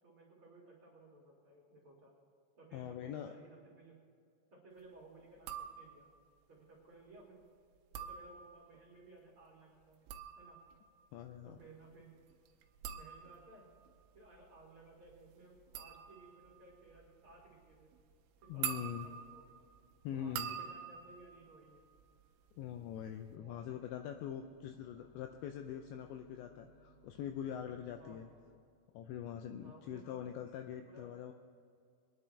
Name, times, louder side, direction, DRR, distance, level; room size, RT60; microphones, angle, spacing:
voice 1, 0.0-2.1 2.5-4.0 4.5-6.1 6.5-7.4 7.9-10.1 10.4-10.6 11.4-12.1 12.9-13.7 14.1-17.9 18.4-19.5 20.1-21.8 23.3-23.8 28.0-28.2 29.6-30.3 30.8-31.1, right 2 dB, 40° right, -4 dB, 2.0 m, -59 dB
voice 2, 2.7-3.3 11.1-11.6 18.5-19.1 20.0-20.5 22.6-28.3 28.9-31.3, left 9 dB, 85° left, 5 dB, 2.6 m, -43 dB
sound 1, 5.4-6.2 7.7-8.8 9.8-22.5 22.8-23.4, right 9 dB, 85° right, 2.8 m, -47 dB
sound 2, 23.2-28.5, right 2 dB, 35° left, 1.3 m, -67 dB
24.0 x 10.0 x 3.3 m, 2.2 s
omnidirectional pair, 5.7 m